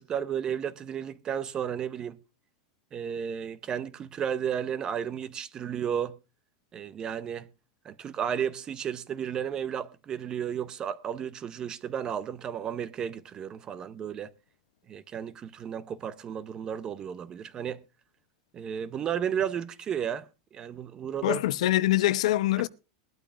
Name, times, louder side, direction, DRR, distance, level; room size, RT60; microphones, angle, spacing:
voice 1, 0.0-2.2 2.9-6.2 6.7-7.5 7.8-14.3 14.9-17.8 18.5-21.4, right 8 dB, 20° right, 0.7 m, -33 dB
voice 2, 21.2-22.7, left 15 dB, 70° left, 0.8 m, -24 dB
21.5 x 12.0 x 2.5 m
supercardioid pair, 160°, 3 cm